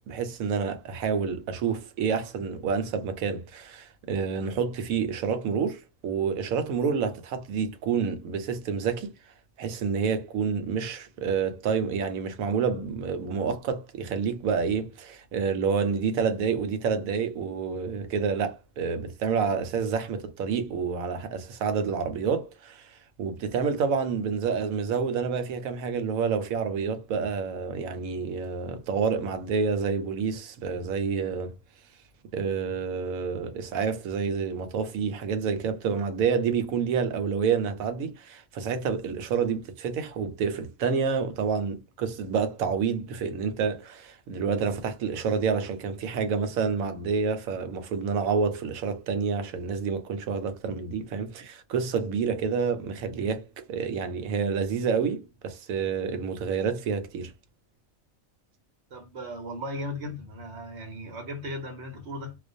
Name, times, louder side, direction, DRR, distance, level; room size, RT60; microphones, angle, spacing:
voice 1, 0.1-9.1 9.6-22.9 23.2-31.5 32.3-57.3, right 6 dB, 90° right, 1.0 m, -28 dB
voice 2, 58.9-62.4, equal, 60° right, 0.9 m, -37 dB
2.5 x 2.1 x 2.5 m
omnidirectional pair, 1.4 m